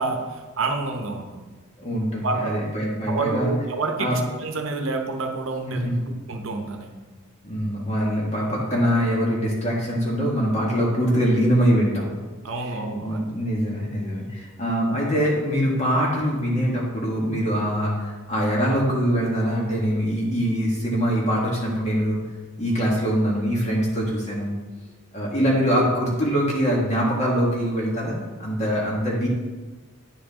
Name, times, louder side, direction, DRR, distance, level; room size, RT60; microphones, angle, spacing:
voice 1, 0.0-1.5 2.2-2.7 3.1-5.9 6.3-7.0 12.4-13.3, right 3 dB, 70° right, 4 dB, 0.9 m, -28 dB
voice 2, 1.8-3.5 4.0-4.2 5.7-5.9 7.4-12.1 13.0-22.2 22.6-24.5 25.1-29.3, equal, 30° left, -4 dB, 1.9 m, -23 dB
9.9 x 5.0 x 3.7 m, 1.3 s
head